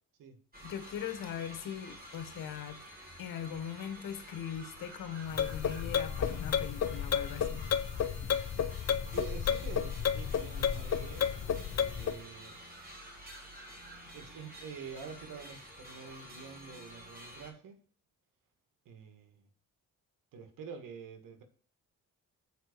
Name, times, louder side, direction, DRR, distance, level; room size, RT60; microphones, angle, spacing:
sound 1, 0.5-17.5, equal, 30° right, 3.4 m, -50 dB
voice 1, 0.6-2.8 3.2-7.7, left 9 dB, 85° left, 9 dB, 1.6 m, -40 dB
sound 2, 5.3-12.2, left 8 dB, 50° left, 0.9 m, -32 dB
voice 2, 9.1-11.4 11.7-12.6 14.1-17.8 18.9-19.5 20.3-21.4, right 6 dB, 85° right, 7 dB, 1.9 m, -47 dB
8.0 x 4.8 x 6.7 m, 0.41 s
cardioid pair, 75°, 32 cm